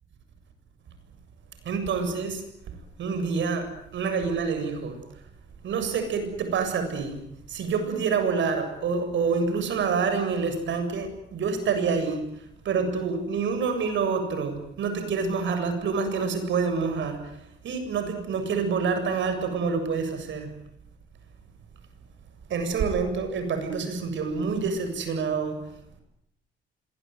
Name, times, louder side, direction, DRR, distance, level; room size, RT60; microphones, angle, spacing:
voice 1, 1.6-2.4 3.0-5.2 5.6-7.2 7.5-20.5 22.5-25.6, right 5 dB, 70° right, 8 dB, 7.4 m, -27 dB
26.0 x 22.0 x 9.6 m, 0.77 s
cardioid pair, 90°, 20 cm